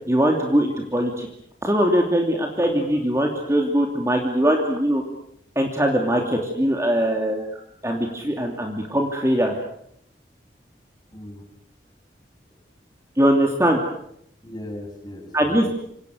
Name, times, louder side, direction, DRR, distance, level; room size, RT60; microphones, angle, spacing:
voice 1, 0.1-1.3 1.6-5.0 5.6-7.5 7.8-9.5 13.2-13.8 15.3-15.7, equal, 15° right, 2 dB, 2.8 m, -21 dB
voice 2, 2.6-3.0 11.1-11.5 14.4-15.7, left 1 dB, 20° left, 3 dB, 6.8 m, -38 dB
27.5 x 26.5 x 6.5 m, 0.73 s
head